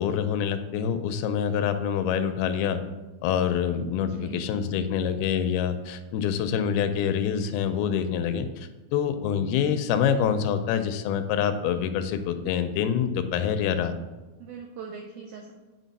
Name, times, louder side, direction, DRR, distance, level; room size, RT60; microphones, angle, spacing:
voice 1, 0.0-2.8 3.2-13.9, left 8 dB, 85° left, 9 dB, 2.5 m, -26 dB
voice 2, 4.0-4.5 14.4-15.5, right 6 dB, 85° right, 1 dB, 1.7 m, -41 dB
9.2 x 4.0 x 4.0 m, 1.2 s
omnidirectional pair, 4.3 m